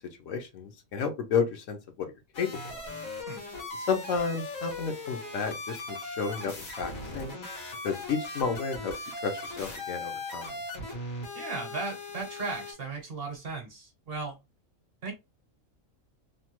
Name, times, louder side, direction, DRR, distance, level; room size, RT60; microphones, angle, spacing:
voice 1, 0.2-2.1 2.4-2.7 3.8-7.3 7.8-8.9 9.2-10.5, left 5 dB, 70° left, 1.0 m, -31 dB
sound 1, 2.3-12.7, left 2 dB, 90° left, 1.7 m, -39 dB
voice 2, 11.3-14.4 15.0-15.1, right 4 dB, 50° right, 1.0 m, -36 dB
3.2 x 2.2 x 2.9 m
omnidirectional pair, 1.4 m